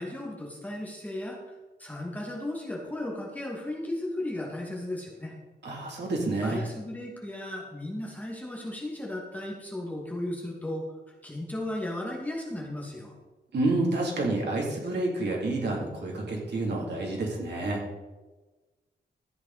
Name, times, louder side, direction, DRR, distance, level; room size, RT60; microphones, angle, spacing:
voice 1, 0.0-1.4 1.8-5.3 6.4-11.0 11.2-13.1, left 1 dB, 10° left, -3 dB, 2.3 m, -35 dB
voice 2, 5.6-6.6 13.5-17.8, right 2 dB, 70° right, -2 dB, 3.1 m, -29 dB
13.5 x 8.6 x 4.2 m, 1.2 s
wide cardioid pair, 175°, 18 cm